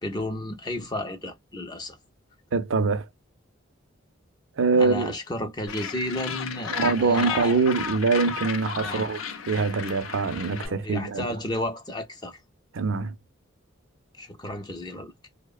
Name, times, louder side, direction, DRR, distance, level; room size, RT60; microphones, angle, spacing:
voice 1, 0.0-2.0 4.7-7.5 8.8-9.1 10.6-12.4 14.2-15.1, left 1 dB, 20° left, 0.4 m, -33 dB
voice 2, 2.5-3.1 4.6-5.1 6.7-9.2 9.5-11.3 12.7-13.1, right 4 dB, 70° right, 0.5 m, -24 dB
Gull seagull, 5.7-10.7, left 6 dB, 80° left, 0.4 m, -33 dB
2.7 x 2.0 x 2.3 m
head